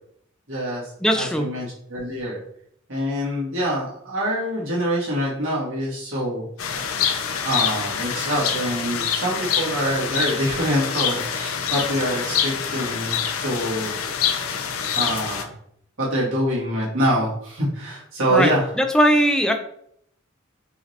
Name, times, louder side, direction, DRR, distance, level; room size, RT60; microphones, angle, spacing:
voice 1, 0.5-2.4 2.9-6.4 7.4-13.9 14.9-15.5 16.0-18.7, equal, 65° right, -6 dB, 1.7 m, -25 dB
voice 2, 1.0-1.5 18.3-18.5 18.8-19.5, equal, 5° left, 5 dB, 0.4 m, -19 dB
sound 1, 6.6-15.4, left 7 dB, 85° left, 0.5 m, -26 dB
4.8 x 2.8 x 3.3 m, 0.69 s
head